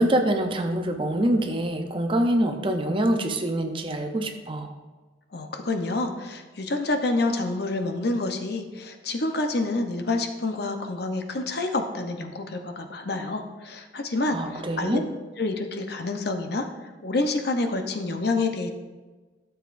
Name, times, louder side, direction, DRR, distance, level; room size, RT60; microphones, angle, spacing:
voice 1, 0.0-4.7 14.3-15.0, right 1 dB, 30° right, 5 dB, 0.6 m, -25 dB
voice 2, 5.3-15.0 15.4-16.6 17.0-18.7, left 2 dB, 60° left, 5 dB, 0.8 m, -28 dB
12.5 x 7.0 x 2.6 m, 1.3 s
head